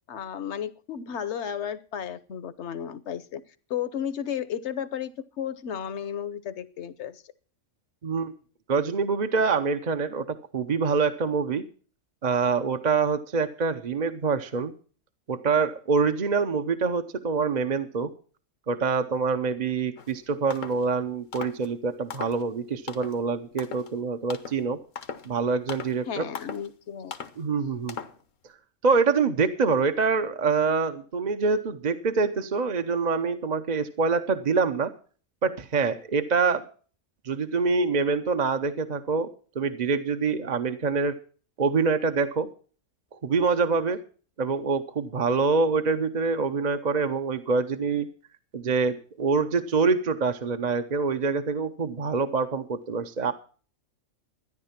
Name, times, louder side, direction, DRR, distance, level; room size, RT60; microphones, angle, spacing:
voice 1, 0.1-3.4 3.7-7.2 26.1-27.1, left 9 dB, 65° left, 1.1 m, -33 dB
voice 2, 8.7-10.3 10.5-11.6 12.2-14.7 15.3-18.1 18.7-24.8 25.2-26.3 27.4-28.0 28.8-34.9 35.4-36.6 37.2-39.3 39.6-41.1 41.6-42.5 43.1-44.0 44.4-48.1 48.5-53.3, right 4 dB, 40° right, 0.8 m, -25 dB
sound 1, 20.0-20.1 20.5-20.8 21.3-21.7 22.1-22.5 22.9-23.2 23.6-23.9 24.3-24.6 25.0-25.3 25.7-26.0 26.3-26.7 27.1-27.4 27.9-28.2, left 7 dB, 85° left, 1.5 m, -38 dB
13.5 x 10.5 x 5.8 m
omnidirectional pair, 1.3 m